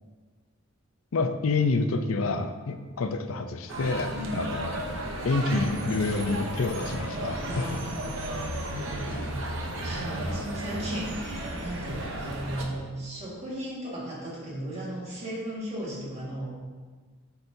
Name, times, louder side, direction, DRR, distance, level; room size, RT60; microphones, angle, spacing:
voice 1, 1.1-4.7 5.2-7.8, left 3 dB, 75° left, 8 dB, 0.5 m, -28 dB
sound 1, 3.7-12.6, right 1 dB, 65° right, 0.8 m, -34 dB
voice 2, 4.1-4.6 7.5-16.5, right 1 dB, 30° right, -6 dB, 1.8 m, -36 dB
7.8 x 5.8 x 2.7 m, 1.4 s
head